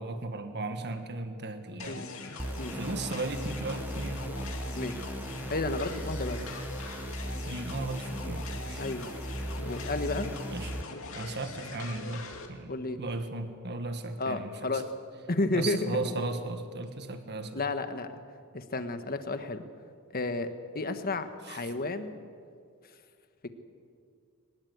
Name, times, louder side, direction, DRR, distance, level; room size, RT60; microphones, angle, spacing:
voice 1, 0.0-2.5 2.7-4.2 7.4-8.8 10.5-10.7 11.1-12.7 13.0-14.8 15.5-17.6 21.5-21.7, right 2 dB, 50° right, 7 dB, 1.6 m, -36 dB
sound 1, 1.8-12.5, left 3 dB, 65° left, 2.6 m, -42 dB
sound 2, 2.4-10.8, right 1 dB, 10° right, 0.9 m, -38 dB
voice 2, 5.5-6.4 8.8-9.1 9.6-10.3 12.7-13.0 14.2-14.8 15.3-16.1 17.5-18.2 18.5-19.6 20.1-20.5 20.7-22.1, left 2 dB, 45° left, 9 dB, 1.5 m, -32 dB
23.5 x 20.5 x 8.1 m, 2.2 s
head